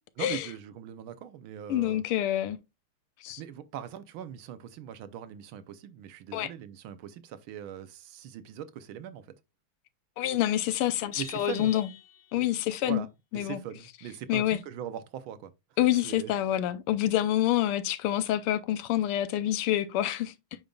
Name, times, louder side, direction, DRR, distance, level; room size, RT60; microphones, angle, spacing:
voice 1, 0.2-2.0 3.3-9.3 11.2-11.7 12.8-13.1 13.3-15.5 16.0-16.3, right 10 dB, 75° right, 1.4 m, -41 dB
voice 2, 1.7-2.6 3.2-3.4 6.3-6.5 10.2-11.9 12.3-13.1 13.3-13.6 14.3-14.6 15.8-20.3, left 12 dB, 85° left, 1.6 m, -27 dB
Vehicle horn car horn honking, 11.1-12.5, left 8 dB, 55° left, 1.5 m, -46 dB
9.0 x 5.2 x 2.3 m
omnidirectional pair, 2.4 m